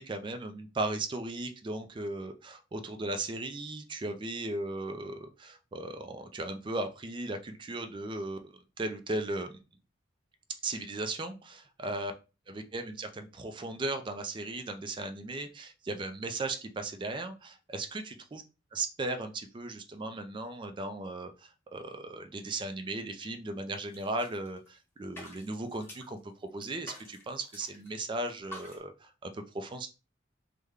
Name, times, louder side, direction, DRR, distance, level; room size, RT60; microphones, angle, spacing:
voice 1, 0.0-9.6 10.6-12.1 12.5-18.4 18.7-29.9, right 2 dB, 25° right, 8 dB, 0.4 m, -37 dB
sound 1, 23.7-24.8 25.1-26.2 26.6-27.9 28.2-28.8, left 1 dB, 10° left, 0.9 m, -49 dB
3.2 x 2.1 x 3.6 m, 0.31 s
head